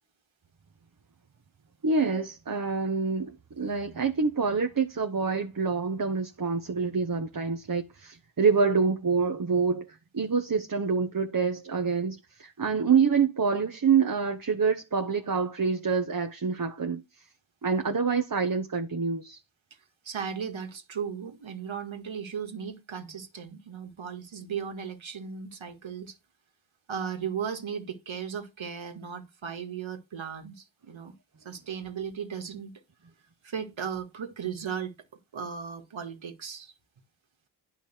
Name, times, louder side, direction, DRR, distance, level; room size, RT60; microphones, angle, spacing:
voice 1, 1.8-17.0 17.6-19.4, right 5 dB, 45° right, 1.2 m, -26 dB
voice 2, 20.0-26.1 26.9-31.1 31.4-32.7 33.4-34.9 35.3-36.7, right 7 dB, 75° right, 2.1 m, -36 dB
10.0 x 5.6 x 4.5 m
cardioid pair, 55°, 47 cm